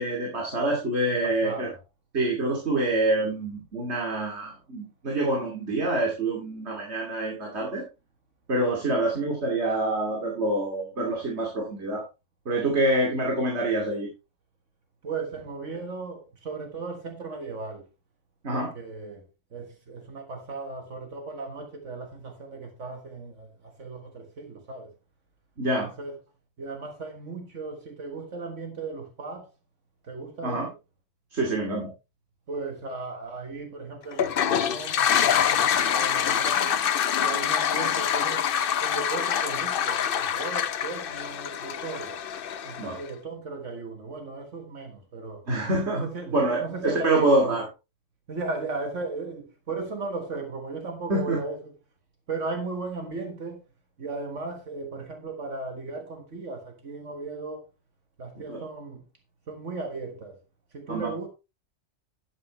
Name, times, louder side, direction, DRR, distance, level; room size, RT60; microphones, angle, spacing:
voice 1, 0.0-1.7 2.1-7.8 8.5-12.0 12.5-14.1 18.4-18.7 25.6-25.9 30.4-30.7 31.3-31.9 42.8-43.0 45.5-47.6 51.1-51.4 58.5-58.6 60.9-61.1, right 2 dB, 60° right, 2.9 m, -26 dB
voice 2, 1.1-1.8 15.0-17.9 18.5-24.9 25.8-26.2 26.6-29.5 30.0-30.7 32.5-36.8 37.2-38.5 38.8-42.2 42.6-45.4 46.0-47.6 48.3-51.7 52.3-53.6 54.0-57.6 58.2-59.0 59.5-60.4 60.7-61.3, right 3 dB, 80° right, 1.9 m, -36 dB
Toilet flush, 34.1-43.0, left 9 dB, 55° left, 0.7 m, -25 dB
11.5 x 8.8 x 3.1 m
omnidirectional pair, 1.2 m